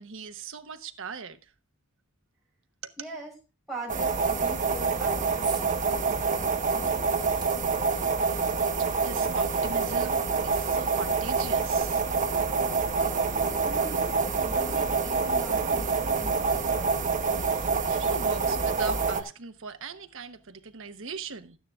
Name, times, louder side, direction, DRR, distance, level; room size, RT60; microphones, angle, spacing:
voice 1, 0.0-1.5 2.8-2.9 9.0-12.1 17.3-21.6, right 5 dB, 60° right, 1.0 m, -40 dB
voice 2, 3.0-3.3 3.7-7.4 13.6-17.0, right 1 dB, ahead, 5.5 m, -42 dB
sound 1, 3.9-19.2, right 4 dB, 35° right, 1.0 m, -26 dB
sound 2, 5.4-5.7 6.1-6.2 6.8-8.5 9.4-9.5 9.8-9.9, right 6 dB, 20° right, 1.5 m, -45 dB
sound 3, 12.3-17.9, right 2 dB, 80° right, 1.6 m, -44 dB
12.0 x 9.4 x 3.5 m
head